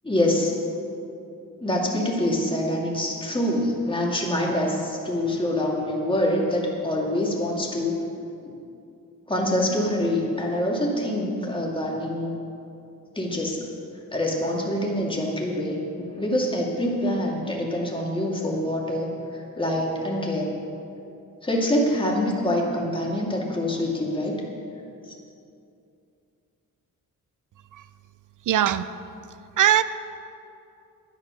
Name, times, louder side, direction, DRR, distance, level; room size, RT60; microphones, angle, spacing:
voice 1, 0.0-0.5 1.6-8.0 8.4-8.5 9.3-12.3 13.1-13.6 14.1-20.5 21.4-24.3 25.1-25.2, left 1 dB, 15° left, -2 dB, 2.4 m, -25 dB
voice 2, 28.5-28.8 29.6-29.8, right 11 dB, 65° right, 14 dB, 0.5 m, -19 dB
10.5 x 10.5 x 6.3 m, 2.6 s
cardioid pair, 95°, 34 cm